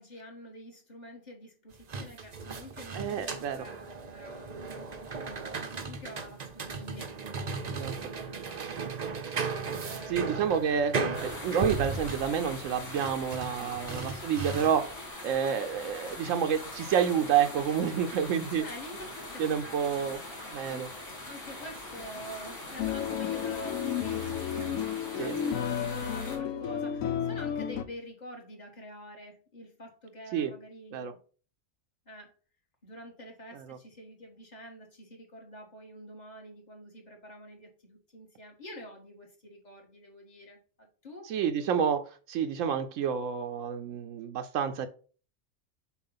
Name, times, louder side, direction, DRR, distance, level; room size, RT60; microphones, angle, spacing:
voice 1, 0.0-7.1 7.9-8.9 9.8-10.4 13.6-14.1 18.6-19.8 20.7-20.8 21.3-31.2 32.1-32.3 32.8-41.3, equal, 35° left, 1 dB, 1.6 m, -47 dB
sound 1, 1.7-15.0, right 4 dB, 40° right, 0.6 m, -36 dB
voice 2, 2.9-3.7 7.7-8.1 10.1-10.9 11.2-14.9 15.2-18.7 19.4-20.2 20.5-20.9 25.2-25.3 30.3-30.5 30.9-31.1 33.5-33.8 41.3-44.9, right 8 dB, 80° right, 8 dB, 0.9 m, -29 dB
sound 2, 11.1-26.4, left 2 dB, 70° left, 2.7 m, -42 dB
sound 3, 22.8-27.8, left 8 dB, 90° left, 1.0 m, -32 dB
7.1 x 2.4 x 5.6 m, 0.39 s
omnidirectional pair, 1.3 m